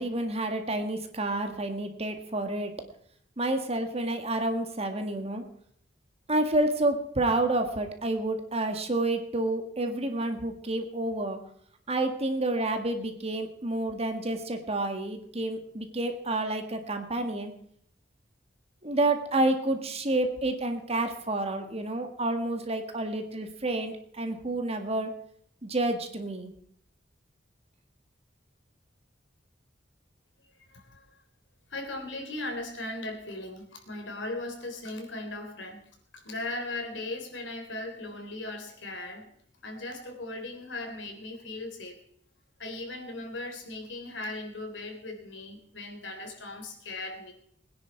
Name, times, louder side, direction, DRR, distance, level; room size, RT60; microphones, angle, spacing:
voice 1, 0.0-2.7 3.4-5.4 6.3-11.4 11.9-17.5 18.8-25.1 25.6-26.5, right 2 dB, 35° right, 6 dB, 1.9 m, -29 dB
voice 2, 30.7-31.0 31.7-35.8 36.1-39.3 39.6-42.0 42.6-47.3, left 2 dB, 70° left, 4 dB, 3.6 m, -38 dB
21.5 x 10.5 x 4.6 m, 0.67 s
head